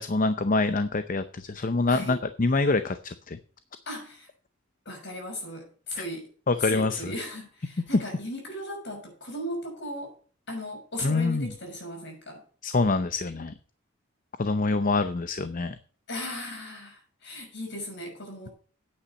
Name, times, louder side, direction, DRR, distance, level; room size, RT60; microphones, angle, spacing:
voice 1, 0.0-3.4 6.0-6.1 6.5-7.1 11.0-11.5 12.6-13.5 14.4-15.8, left 3 dB, 40° left, 12 dB, 0.6 m, -25 dB
voice 2, 1.9-2.2 3.9-4.3 4.8-6.3 6.6-10.1 10.5-12.4 16.1-18.5, left 1 dB, 60° left, 2 dB, 6.1 m, -37 dB
9.9 x 8.7 x 5.4 m, 0.42 s
head